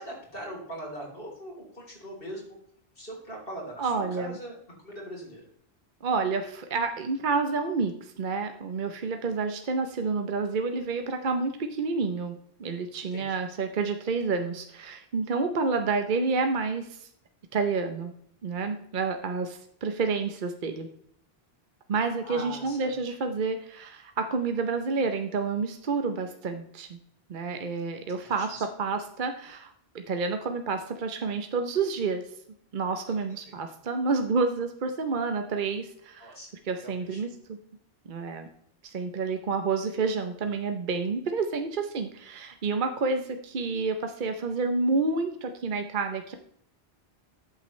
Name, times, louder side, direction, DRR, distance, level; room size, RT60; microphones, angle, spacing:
voice 1, 0.0-2.6 3.0-5.5 13.1-13.4 22.2-22.9 28.2-28.7 33.5-33.6 36.2-36.5 36.8-37.2, right 1 dB, 60° left, -2 dB, 3.8 m, -41 dB
voice 2, 3.8-4.4 6.0-17.1 17.5-18.1 18.4-20.9 21.9-27.0 27.3-32.2 32.7-36.3 36.7-37.6 38.1-38.5 38.8-46.3, right 4 dB, 55° right, 6 dB, 0.9 m, -29 dB
13.5 x 7.7 x 3.2 m, 0.67 s
omnidirectional pair, 1.0 m